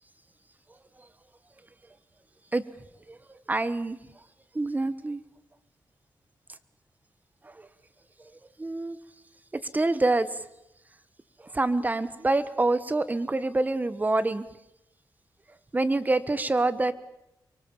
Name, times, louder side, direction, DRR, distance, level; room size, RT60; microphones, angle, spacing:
voice 1, 3.1-4.0 4.5-5.2 7.4-7.7 8.6-9.0 9.7-10.3 11.5-14.4 15.7-16.9, right 2 dB, 25° right, 14 dB, 1.3 m, -26 dB
25.0 x 23.0 x 7.2 m, 0.85 s
wide cardioid pair, 110°, 7 cm